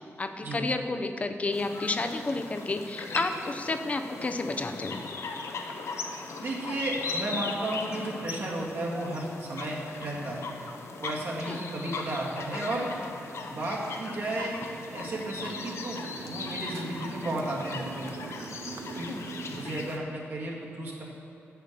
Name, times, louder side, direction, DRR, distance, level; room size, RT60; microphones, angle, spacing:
voice 1, 0.2-5.0 11.5-11.6 19.1-19.2, left 3 dB, 30° left, 7 dB, 0.6 m, -31 dB
sound 1, 1.5-20.0, left 4 dB, 70° left, 0.8 m, -39 dB
voice 2, 6.4-10.5 11.0-12.9 13.5-14.6 14.9-18.1 19.0-19.1 19.6-21.0, right 1 dB, 50° right, -4 dB, 1.9 m, -33 dB
Motorcycle, 12.7-19.9, right 5 dB, 75° right, 0.6 m, -43 dB
7.8 x 7.4 x 6.6 m, 2.8 s
wide cardioid pair, 135°, 5 cm